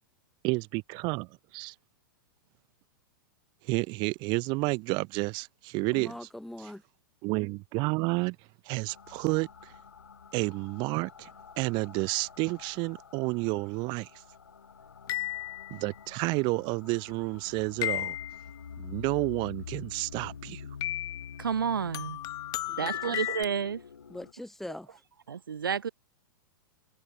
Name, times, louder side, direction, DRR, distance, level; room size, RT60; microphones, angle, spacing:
voice 1, 0.4-1.7 3.6-6.1 7.2-8.4 8.7-9.5 10.3-11.3 11.6-14.1 15.7-18.2 18.8-20.7, right 27 dB, 45° right, 2.3 m, -30 dB
voice 2, 5.9-6.8 22.7-23.2 24.1-25.0, left 1 dB, ahead, 3.5 m, -42 dB
sound 1, 8.9-24.3, left 6 dB, 80° left, 7.3 m, -47 dB
sound 2, 15.1-15.9 17.8-18.5 20.8-21.4 21.9-23.4, left 15 dB, 35° left, 2.1 m, -34 dB
voice 3, 21.4-22.2 22.8-23.8 25.3-25.9, right 7 dB, 80° right, 1.2 m, -30 dB
hypercardioid pair, 105°, 11 cm